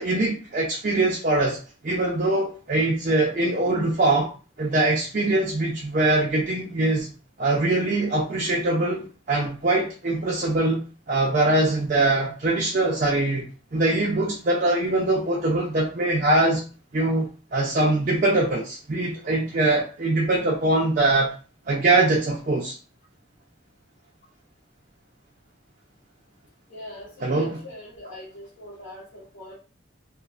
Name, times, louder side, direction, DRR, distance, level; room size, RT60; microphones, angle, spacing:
voice 1, 0.0-4.3 4.6-7.1 7.4-10.8 11.1-13.5 13.7-16.6 16.9-21.3 21.7-22.8 27.2-27.6, right 2 dB, 45° right, -2 dB, 0.5 m, -22 dB
voice 2, 26.7-29.5, left 1 dB, 75° left, -9 dB, 1.2 m, -42 dB
3.1 x 2.1 x 2.4 m, 0.36 s
head